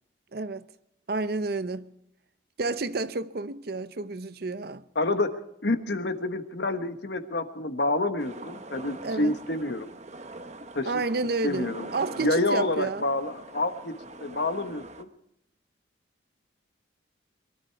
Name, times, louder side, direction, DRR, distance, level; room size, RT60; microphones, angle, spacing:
voice 1, 0.3-0.7 1.1-1.9 2.6-4.8 9.0-9.4 10.9-13.0, right 3 dB, 55° right, 0.6 m, -30 dB
voice 2, 4.9-5.3 5.6-9.9 10.7-10.9 11.4-11.9 12.2-13.9 14.2-15.1, left 2 dB, 60° left, 1.3 m, -28 dB
sound 1, 8.2-15.0, right 2 dB, 35° right, 1.0 m, -43 dB
23.0 x 13.0 x 4.6 m
head